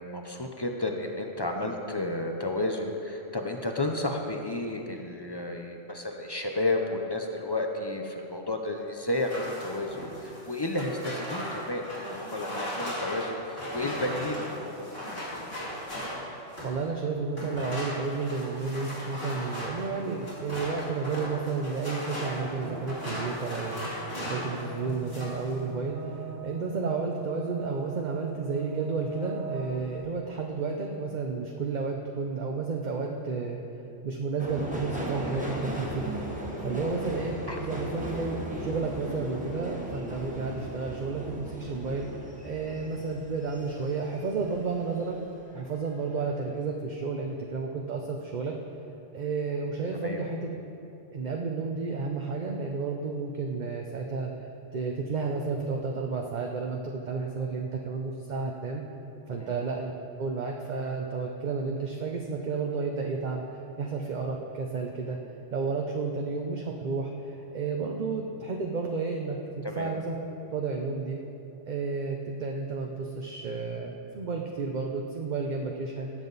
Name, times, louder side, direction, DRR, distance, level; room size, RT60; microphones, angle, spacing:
voice 1, 0.0-15.3 24.2-24.5 35.4-35.6 37.5-37.7 42.6-42.7 49.9-50.2 59.3-59.5 69.6-69.9, left 2 dB, 25° left, 3 dB, 0.5 m, -32 dB
sound 1, 9.1-16.8 17.3-24.6 24.9-25.5, equal, 50° left, 3.3 m, -37 dB
voice 2, 16.6-23.9 24.3-33.6 34.0-36.0 36.6-45.2 45.5-48.5 49.1-50.5 51.1-54.3 54.7-58.8 59.3-59.9 60.2-65.2 65.5-70.2 70.5-71.2 71.7-76.1, right 4 dB, 45° right, 1 dB, 0.7 m, -32 dB
sound 2, 22.3-30.0, right 4 dB, 70° right, 2.8 m, -41 dB
Subway metro underground, 34.4-45.1 45.5-46.2 46.5-46.6, equal, 5° right, 1.3 m, -37 dB
17.5 x 7.4 x 4.0 m, 2.8 s
omnidirectional pair, 1.3 m